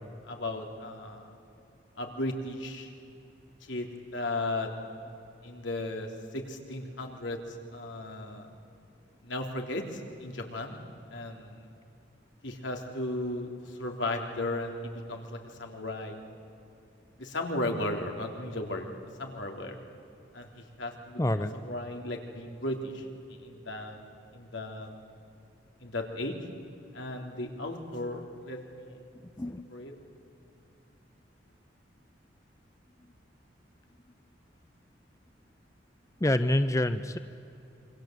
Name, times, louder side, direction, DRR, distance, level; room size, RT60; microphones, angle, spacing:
voice 1, 0.2-1.4 2.0-2.9 3.6-4.7 5.4-8.5 9.2-10.8 11.1-11.7 12.4-16.2 17.2-18.9 19.2-19.8 20.3-24.0 24.3-24.9 25.8-26.4 26.9-29.0 29.7-29.9, left 1 dB, 85° left, 2 dB, 3.3 m, -36 dB
voice 2, 21.2-21.5 29.4-29.7 36.2-37.2, left 1 dB, 15° left, 11 dB, 0.6 m, -26 dB
27.5 x 24.0 x 8.0 m, 2.8 s
head